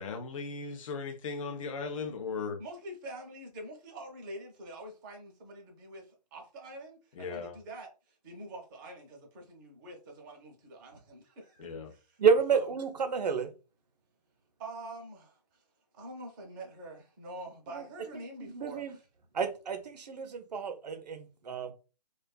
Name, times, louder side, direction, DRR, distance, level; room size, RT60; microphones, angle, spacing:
voice 1, 0.0-2.6 7.1-7.6 11.6-11.9, left 4 dB, 50° left, 0.6 m, -37 dB
voice 2, 2.6-12.0 12.5-12.7 14.6-15.6 15.9-19.0, right 1 dB, 30° right, 0.7 m, -46 dB
voice 3, 12.2-13.5 17.7-17.8 18.4-18.9 19.3-21.7, right 6 dB, 75° right, 0.6 m, -29 dB
2.4 x 2.3 x 2.2 m
figure-of-eight pair, 135°, 21 cm